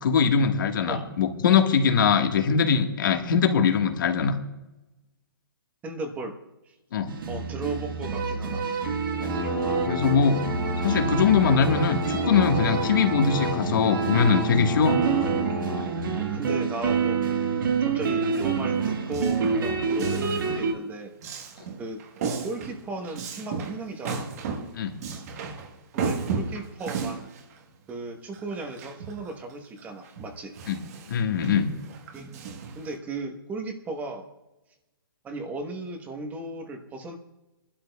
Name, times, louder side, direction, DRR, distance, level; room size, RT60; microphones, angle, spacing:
voice 1, 0.0-4.4 6.9-7.2 9.9-10.4 10.8-15.0 24.7-25.0 30.7-30.8 31.1-31.8, left 6 dB, 60° left, 5 dB, 1.5 m, -22 dB
voice 2, 5.8-6.4 6.7-6.8 7.3-8.7 16.1-17.2 17.6-21.1 21.8-22.0 22.4-24.3 25.9-27.3 27.9-30.6 32.1-32.4 32.8-34.3 35.2-37.2, right 2 dB, 15° right, 5 dB, 1.1 m, -36 dB
sound 1, 7.1-20.7, right 5 dB, 60° right, 1.6 m, -27 dB
sound 2, 9.2-16.0, left 3 dB, 15° left, 1.1 m, -33 dB
Male speech man speaking, 18.3-20.7 21.2-29.3 29.8-33.0, right 5 dB, 40° right, 1.3 m, -35 dB
24.0 x 12.0 x 2.3 m, 1.0 s
hypercardioid pair, 155°, 12 cm